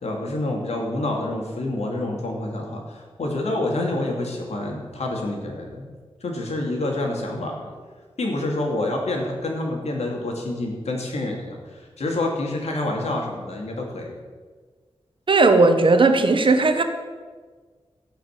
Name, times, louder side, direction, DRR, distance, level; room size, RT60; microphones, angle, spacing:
voice 1, 0.0-5.9 6.2-7.8 8.2-11.6 12.0-14.1, left 2 dB, 85° left, 0 dB, 2.7 m, -27 dB
voice 2, 15.3-16.8, right 3 dB, 50° right, 7 dB, 1.2 m, -16 dB
16.5 x 5.8 x 7.5 m, 1.5 s
wide cardioid pair, 125°, 11 cm